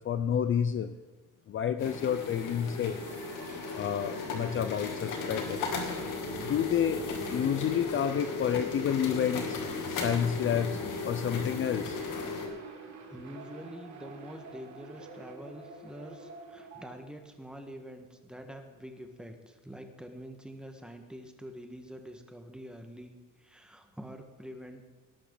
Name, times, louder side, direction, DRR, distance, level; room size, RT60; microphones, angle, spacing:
voice 1, 0.0-0.9 1.5-3.0 3.7-5.7 6.4-7.0 7.3-9.6 9.9-12.0, left 9 dB, 40° left, 11 dB, 0.6 m, -29 dB
sound 1, 1.8-12.5, left 4 dB, 75° left, 2.8 m, -36 dB
sound 2, 2.8-17.0, right 6 dB, 60° right, 3.4 m, -46 dB
voice 2, 13.1-24.8, equal, 5° right, 5 dB, 1.6 m, -46 dB
19.0 x 11.5 x 4.0 m, 1.3 s
cardioid pair, 135°, 32 cm